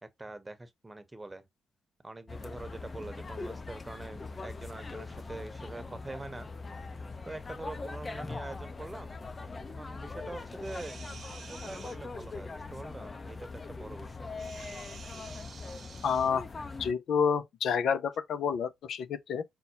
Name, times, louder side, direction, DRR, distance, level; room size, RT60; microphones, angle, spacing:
voice 1, 0.0-1.4 2.0-6.5 7.2-9.2 9.7-11.0 11.5-14.3, right 2 dB, 20° right, 0.9 m, -44 dB
sound 1, 2.3-16.9, left 3 dB, 35° left, 0.6 m, -42 dB
sound 2, 10.6-12.0 14.4-16.3 18.1-18.2, right 6 dB, 60° right, 0.7 m, -50 dB
voice 2, 16.0-16.5 16.8-19.4, left 6 dB, 75° left, 0.4 m, -29 dB
5.4 x 2.1 x 2.8 m
supercardioid pair, 50°, 0 cm